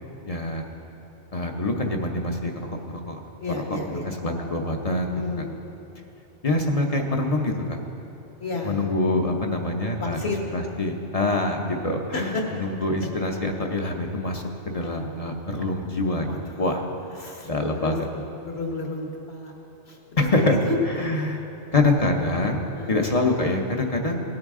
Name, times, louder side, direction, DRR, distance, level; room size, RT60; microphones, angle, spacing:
voice 1, 0.3-0.6 1.3-3.2 3.7-5.5 6.4-7.5 8.6-16.9 17.4-18.1 20.2-20.6 20.8-21.4 21.7-24.2, left 2 dB, 35° left, 2 dB, 0.7 m, -25 dB
voice 2, 3.4-4.1 5.1-5.5 8.4-8.8 10.0-10.4 12.1-12.6 14.8-15.3 16.3-16.4 17.2-17.5 17.7-18.0 18.4-19.5 19.9-20.0 20.4-20.8 22.8-23.1, left 3 dB, 60° left, 0 dB, 1.6 m, -31 dB
17.5 x 8.8 x 3.6 m, 2.9 s
omnidirectional pair, 1.2 m